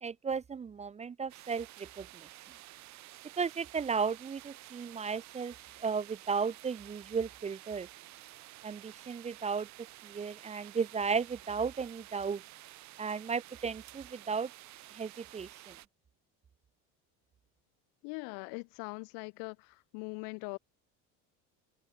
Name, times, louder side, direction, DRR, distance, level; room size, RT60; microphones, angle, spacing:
voice 1, 0.0-2.3 3.4-5.5 5.8-7.9 8.6-9.7 10.0-12.4 13.0-14.5 14.9-15.8, right 5 dB, 20° right, 0.6 m, -35 dB
sound 1, 1.3-15.9, right 16 dB, 55° right, 1.2 m, -52 dB
voice 2, 18.0-20.6, left 36 dB, 85° left, 2.1 m, -41 dB
cardioid pair, 130°, 34 cm